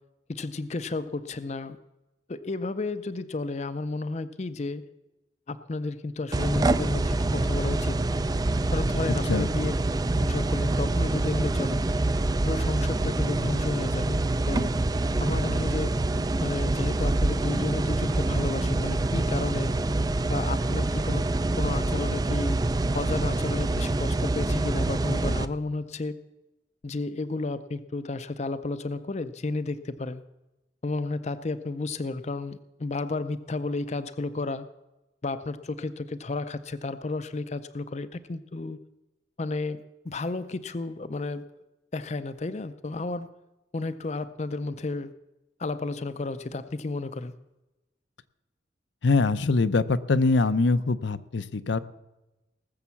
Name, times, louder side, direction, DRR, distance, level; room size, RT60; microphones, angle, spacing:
voice 1, 0.3-1.8 2.3-4.8 5.5-8.0 8.7-9.7 10.1-11.8 12.5-14.7 15.2-15.9 16.4-19.7 20.3-21.3 21.6-22.6 22.9-26.2 26.8-30.2 30.8-34.7 35.2-38.8 39.4-41.5 41.9-43.3 43.7-45.1 45.6-47.3, left 3 dB, 35° left, 12 dB, 0.5 m, -32 dB
sound 1, 6.3-25.5, right 2 dB, 20° right, 0.4 m, -26 dB
voice 2, 9.1-9.5 49.0-51.8, left 3 dB, 75° left, 13 dB, 0.6 m, -23 dB
18.5 x 7.2 x 7.0 m, 1.0 s
head